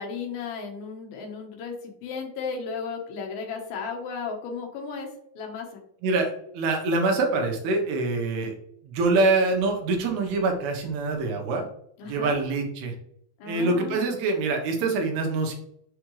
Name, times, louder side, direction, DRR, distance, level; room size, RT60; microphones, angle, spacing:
voice 1, 0.0-5.1 5.4-5.7 12.0-12.4 13.4-14.3 14.8-15.0, left 5 dB, 70° left, 1 dB, 2.9 m, -35 dB
voice 2, 6.0-8.5 8.8-11.7 12.1-13.0 13.5-15.5, right 3 dB, 75° right, 3 dB, 3.1 m, -25 dB
7.0 x 5.1 x 3.2 m, 0.69 s
omnidirectional pair, 4.7 m